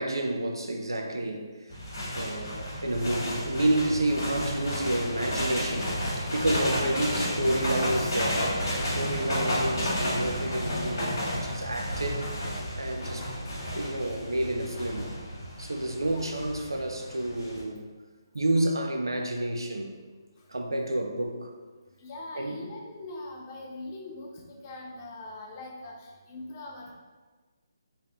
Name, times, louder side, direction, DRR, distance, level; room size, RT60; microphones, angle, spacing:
voice 1, 0.0-1.7 2.2-13.3 13.7-15.2 15.6-17.9 18.3-19.9 20.5-21.5 22.3-22.7, right 1 dB, 85° right, 4 dB, 0.5 m, -30 dB
sound 1, 1.7-17.6, equal, 60° left, 1.4 m, -32 dB
voice 2, 6.6-6.9 13.0-13.1 16.1-16.3 20.4-20.5 22.0-26.9, left 2 dB, 30° left, -1 dB, 0.6 m, -42 dB
3.4 x 2.4 x 3.5 m, 1.3 s
figure-of-eight pair, 150°, 2 cm